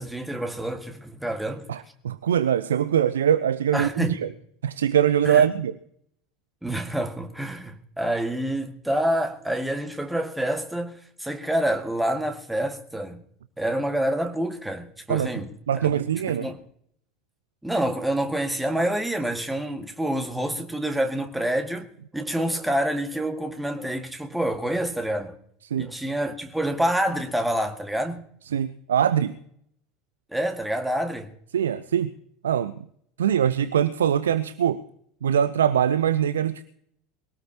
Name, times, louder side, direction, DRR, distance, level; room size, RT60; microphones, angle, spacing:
voice 1, 0.0-1.7 3.7-4.2 5.3-5.5 6.6-13.2 13.6-15.5 15.8-16.6 17.6-25.4 25.8-28.3 30.3-31.3, right 1 dB, 5° right, 1.8 m, -27 dB
voice 2, 1.7-4.3 4.6-5.7 15.1-15.3 15.7-16.5 25.6-25.9 28.5-29.4 31.5-32.1 32.4-32.7 33.2-34.8 35.2-36.7, right 9 dB, 70° right, 0.5 m, -22 dB
22.5 x 17.5 x 2.9 m
figure-of-eight pair, 75°, 0 cm